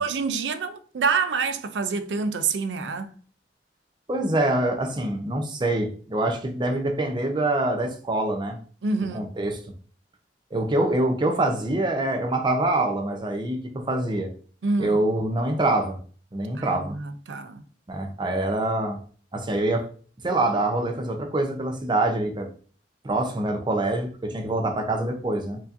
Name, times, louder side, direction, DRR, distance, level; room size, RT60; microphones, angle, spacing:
voice 1, 0.0-3.1 8.8-9.3 14.6-15.0 16.6-17.6, right 4 dB, 85° right, 0.5 m, -27 dB
voice 2, 4.1-8.6 9.1-9.6 10.5-14.3 14.8-16.0 16.3-17.0 17.9-19.0 19.3-19.9 20.2-22.5 23.0-25.6, right 2 dB, 25° right, 0.5 m, -25 dB
4.5 x 2.7 x 2.6 m
head